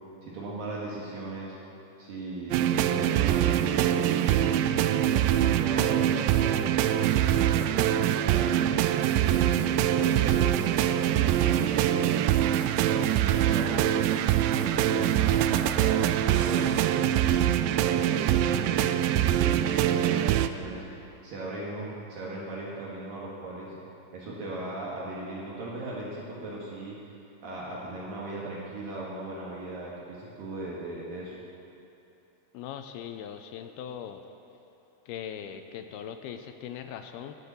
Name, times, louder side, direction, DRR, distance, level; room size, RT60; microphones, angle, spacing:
voice 1, 0.2-1.6 2.0-4.6 5.1-8.5 9.1-12.4 12.8-17.3 17.7-20.8 21.2-23.8 24.1-27.0 27.4-31.3, right 2 dB, 65° right, -5 dB, 3.1 m, -38 dB
sound 1, 2.5-20.5, right 11 dB, 90° right, 2.0 m, -24 dB
voice 2, 32.5-34.2 35.1-37.4, left 9 dB, 80° left, 7 dB, 2.4 m, -40 dB
21.0 x 7.7 x 6.9 m, 2.9 s
omnidirectional pair, 4.6 m